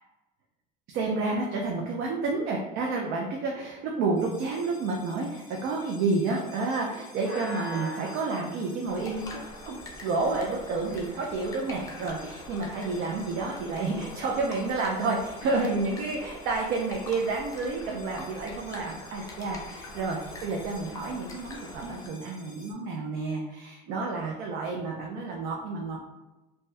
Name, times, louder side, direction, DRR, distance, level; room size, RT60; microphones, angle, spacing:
voice 1, 0.9-9.8 10.0-26.0, right 3 dB, 60° right, -1 dB, 0.4 m, -30 dB
sound 1, 4.2-22.7, equal, 10° right, 0.9 m, -48 dB
sound 2, 8.9-22.1, left 2 dB, 20° left, 0.4 m, -44 dB
2.6 x 2.2 x 3.1 m, 1.1 s
cardioid pair, 160°, 18 cm